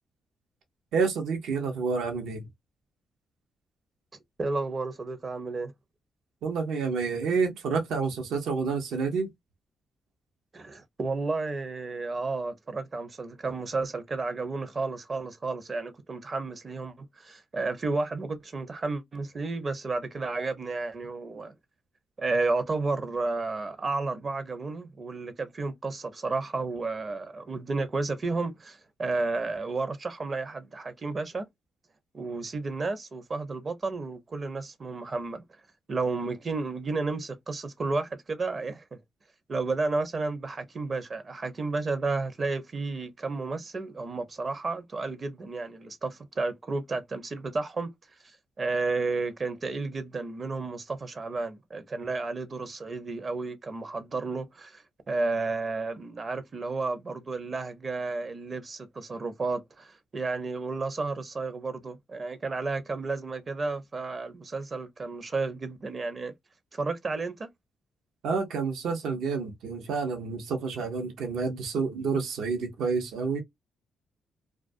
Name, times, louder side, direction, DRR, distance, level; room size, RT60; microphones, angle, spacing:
voice 1, 0.9-2.5 6.4-9.3 68.2-73.4, right 5 dB, 75° right, 0.7 m, -29 dB
voice 2, 4.4-5.7 10.5-21.5 22.2-31.5 32.1-35.4 35.9-38.8 39.5-47.9 48.6-66.3 66.7-67.5, right 3 dB, 40° right, 0.6 m, -32 dB
2.3 x 2.3 x 2.5 m
supercardioid pair, 55°, 0 cm